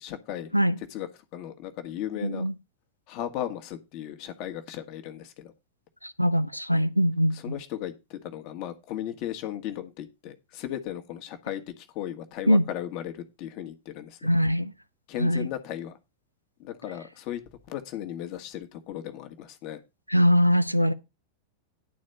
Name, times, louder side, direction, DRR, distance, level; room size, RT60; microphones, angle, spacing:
voice 1, 0.0-2.4 3.1-5.5 7.3-14.3 15.1-16.0 16.6-17.4 17.7-19.8, left 11 dB, 40° left, 1.5 m, -36 dB
voice 2, 2.2-2.5 6.0-7.5 12.5-12.6 14.2-14.7 15.2-15.5 20.1-20.9, equal, 90° left, 0.7 m, -22 dB
11.0 x 4.3 x 6.6 m
figure-of-eight pair, 90°, 0 cm